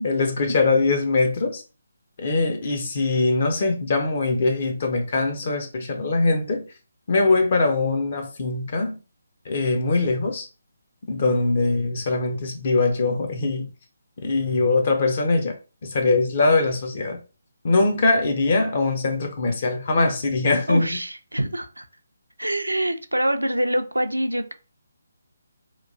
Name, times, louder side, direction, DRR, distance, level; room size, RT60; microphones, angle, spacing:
voice 1, 0.0-1.6 2.2-6.6 7.1-9.0 9.5-10.5 11.1-13.7 14.2-15.6 15.8-17.2 17.6-20.9, left 3 dB, 45° left, 0.5 m, -22 dB
voice 2, 20.7-21.9 22.4-24.5, right 1 dB, 90° right, 0.4 m, -25 dB
2.9 x 2.3 x 2.5 m
figure-of-eight pair, 145°, 0 cm